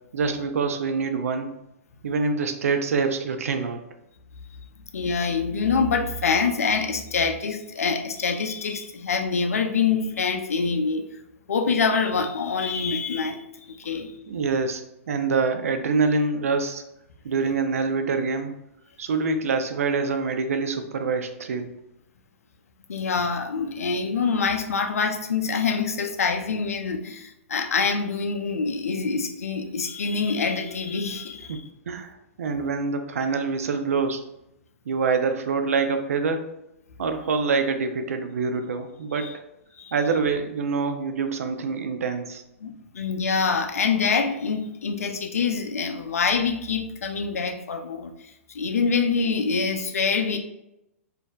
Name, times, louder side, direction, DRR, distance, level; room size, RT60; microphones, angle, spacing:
voice 1, 0.1-1.5 2.0-3.8 14.3-16.8 17.2-18.5 19.0-21.8 31.5-31.6 31.9-34.2 34.9-36.5 37.0-39.4 39.9-42.4, right 4 dB, 75° right, 7 dB, 0.5 m, -25 dB
voice 2, 4.9-11.1 11.5-14.2 22.9-31.6 39.2-39.3 39.8-39.9 42.6-50.4, left 5 dB, 80° left, 6 dB, 0.5 m, -25 dB
4.3 x 2.6 x 2.3 m, 0.85 s
hypercardioid pair, 120°, 8 cm